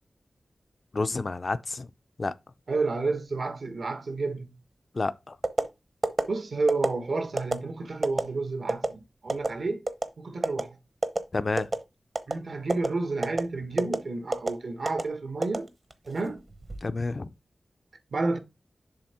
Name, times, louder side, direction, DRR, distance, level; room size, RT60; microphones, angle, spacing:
voice 1, 0.9-1.9 2.2-2.3 4.9-5.4 11.3-11.7 16.8-17.3, left 3 dB, 40° left, 0.5 m, -29 dB
voice 2, 2.7-4.6 6.3-9.8 10.2-10.8 12.3-15.7 16.1-16.4 18.1-18.4, right 3 dB, 70° right, 1.3 m, -30 dB
sound 1, 5.4-5.7 6.0-6.2 6.7-6.9 7.4-7.5 8.0-8.2 8.7-8.9 9.3-9.5 9.9-10.1 10.4-10.6 11.0-11.2 11.6-11.8 12.2-12.4 12.7-12.9 13.2-13.4 13.8-14.0 14.3-14.5 14.9-15.0 15.4-16.1 16.5-16.8, right 2 dB, 40° right, 0.9 m, -25 dB
7.2 x 2.9 x 5.7 m
wide cardioid pair, 115°, 0 cm